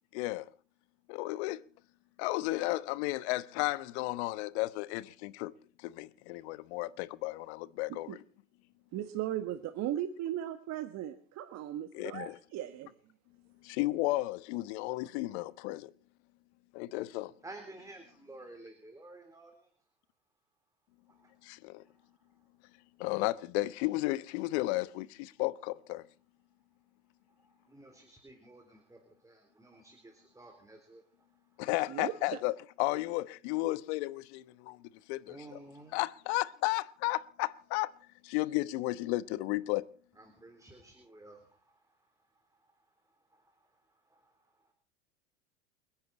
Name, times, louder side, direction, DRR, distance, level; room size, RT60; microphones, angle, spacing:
voice 1, 0.1-0.5 1.1-1.6 2.2-5.5 5.8-8.2 11.9-12.4 13.6-15.9 16.7-17.3 21.4-21.8 23.0-26.0 31.6-34.8 35.1-35.6 35.9-37.9 38.2-39.9, left 19 dB, 60° left, 1.1 m, -33 dB
voice 2, 8.9-12.9 31.9-32.1, right 12 dB, 45° right, 1.5 m, -37 dB
voice 3, 17.4-19.7 21.1-21.3 27.4-31.0 35.3-36.0 40.2-41.8 42.5-42.6 43.3-44.4, right 2 dB, 10° right, 3.7 m, -53 dB
29.5 x 10.5 x 4.2 m
hypercardioid pair, 90°, 37 cm